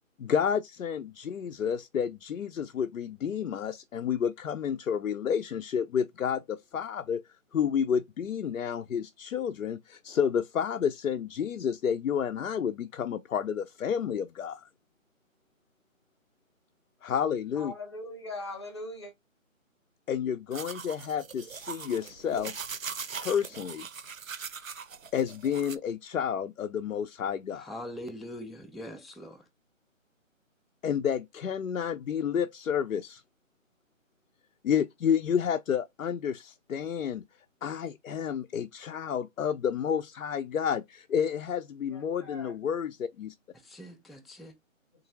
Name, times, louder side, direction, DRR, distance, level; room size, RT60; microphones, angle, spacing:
voice 1, 0.2-7.2 7.5-14.7 17.0-17.7 20.1-22.5 23.1-23.9 25.1-27.7 30.8-33.2 34.6-37.2 37.6-43.3, left 8 dB, 90° left, 0.5 m, -30 dB
voice 2, 17.6-19.1 41.9-42.5, left 2 dB, 20° left, 0.7 m, -40 dB
sound 1, 20.5-25.8, right 6 dB, 75° right, 0.7 m, -40 dB
voice 3, 27.6-29.4 43.6-44.5, left 1 dB, ahead, 0.3 m, -42 dB
3.8 x 2.6 x 2.8 m
figure-of-eight pair, 160°, 40 cm